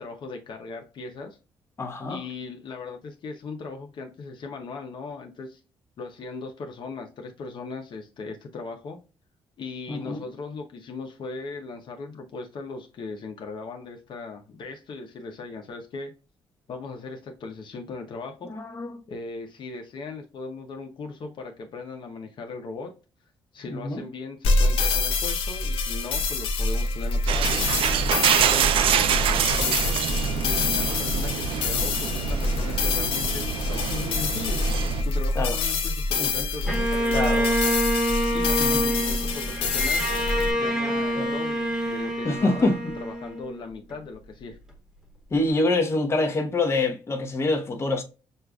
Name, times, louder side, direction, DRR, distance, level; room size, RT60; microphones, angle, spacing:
voice 1, 0.0-1.4 2.1-5.6 6.0-9.0 9.6-16.2 16.7-18.5 19.1-22.9 23.5-27.6 28.3-30.0 30.4-34.6 35.0-37.8 38.3-40.1 40.6-44.6, left 4 dB, 55° left, 0.8 m, -38 dB
voice 2, 1.8-2.2 9.9-10.2 18.5-18.9 23.8-24.0 35.4-35.6 36.2-36.4 37.1-37.4 38.6-38.8 41.1-41.3 42.2-42.7 45.3-48.0, left 2 dB, 30° left, 1.0 m, -25 dB
sound 1, 24.4-40.5, left 3 dB, 85° left, 1.0 m, -26 dB
sound 2, 27.3-35.0, right 8 dB, 70° right, 0.4 m, -26 dB
Bowed string instrument, 36.7-43.9, equal, 5° right, 1.3 m, -26 dB
6.4 x 2.4 x 2.3 m
cardioid pair, 115°, 9 cm